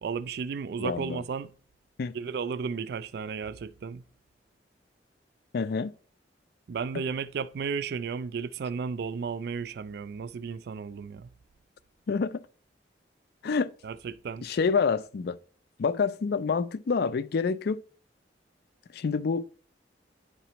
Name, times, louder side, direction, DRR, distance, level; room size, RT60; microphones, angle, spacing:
voice 1, 0.0-1.5 2.1-4.0 6.7-11.3 13.8-14.5, right 5 dB, 65° right, 0.4 m, -34 dB
voice 2, 0.8-1.2 2.0-2.2 5.5-5.9 12.1-12.4 13.4-13.7 14.4-15.4 15.8-17.8 18.9-19.4, left 5 dB, 60° left, 0.4 m, -27 dB
10.0 x 4.2 x 2.9 m
head